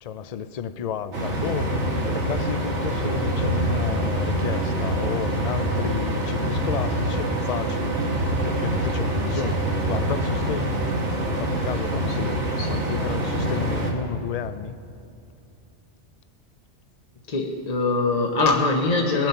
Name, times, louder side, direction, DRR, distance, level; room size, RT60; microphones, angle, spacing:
voice 1, 0.0-8.0 8.3-9.6 9.9-10.8 11.2-12.4 12.7-14.7, left 8 dB, 55° left, 13 dB, 0.4 m, -32 dB
sound 1, 1.1-13.9, right 1 dB, 85° right, 1.9 m, -25 dB
voice 2, 17.3-19.3, left 3 dB, 40° left, 1 dB, 0.9 m, -23 dB
20.0 x 7.5 x 5.6 m, 2.7 s
omnidirectional pair, 1.2 m